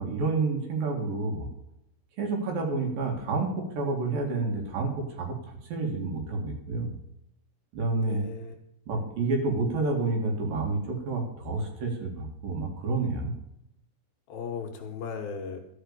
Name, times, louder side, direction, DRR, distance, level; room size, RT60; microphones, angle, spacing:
voice 1, 0.0-1.5 2.2-6.9 7.7-8.2 8.9-13.3, right 3 dB, 60° right, 2 dB, 3.3 m, -29 dB
voice 2, 7.9-8.6 14.3-15.6, left 6 dB, 70° left, 2 dB, 2.8 m, -37 dB
13.5 x 5.6 x 6.7 m, 0.81 s
omnidirectional pair, 4.8 m